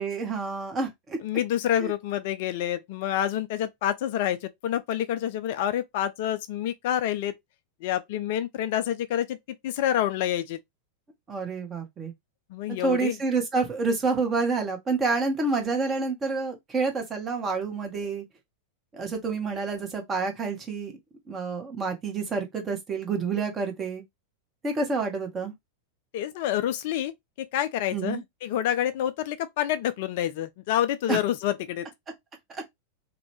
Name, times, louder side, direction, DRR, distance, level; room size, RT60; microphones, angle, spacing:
voice 1, 0.0-1.2 1.8-1.9 11.3-12.1 12.7-18.2 18.9-20.9 21.3-24.0 24.6-25.5 27.9-28.2 31.1-31.2 32.5-32.6, right 4 dB, 20° right, 0.9 m, -28 dB
voice 2, 1.2-7.3 7.8-9.4 9.6-10.6 12.5-13.2 26.1-27.1 27.4-31.9, left 11 dB, 50° left, 0.3 m, -28 dB
2.6 x 2.1 x 3.1 m
figure-of-eight pair, 90°, 0 cm